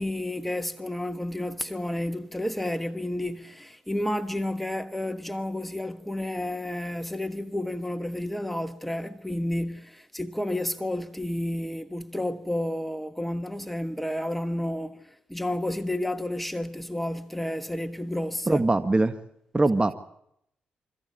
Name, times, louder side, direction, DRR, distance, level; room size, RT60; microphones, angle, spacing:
voice 1, 0.0-18.6, left 1 dB, 5° left, 1.4 m, -31 dB
voice 2, 18.5-19.1 19.5-19.9, right 2 dB, 25° right, 1.6 m, -22 dB
25.5 x 14.5 x 9.9 m
hypercardioid pair, 45°, 4 cm